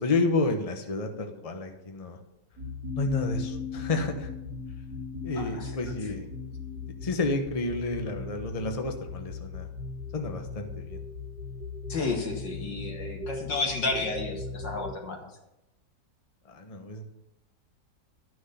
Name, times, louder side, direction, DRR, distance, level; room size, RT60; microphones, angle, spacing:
voice 1, 0.0-2.2 3.0-4.3 5.2-6.2 7.0-9.7 10.1-11.0 16.4-17.1, left 3 dB, 25° left, 4 dB, 1.0 m, -30 dB
sound 1, 2.6-14.9, left 4 dB, 85° right, 2.4 m, -38 dB
voice 2, 5.4-5.7 6.1-6.2 11.9-15.2, left 3 dB, 85° left, 1 dB, 2.7 m, -32 dB
12.0 x 6.3 x 6.9 m, 0.91 s
omnidirectional pair, 1.9 m